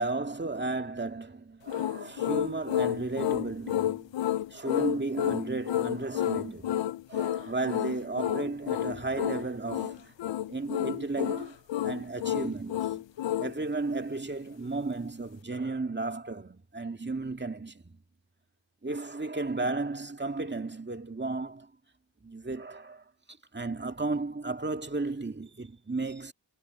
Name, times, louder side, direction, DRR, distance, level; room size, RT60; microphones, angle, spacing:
voice 1, 0.0-4.0 4.5-10.1 10.5-11.6 11.8-13.0 13.4-18.0 18.8-21.7 22.2-23.0 23.5-26.3, right 3 dB, 20° right, 2.1 m, -34 dB
sound 1, 1.7-13.5, left 12 dB, 65° left, 0.6 m, -30 dB
cardioid pair, 50°, 49 cm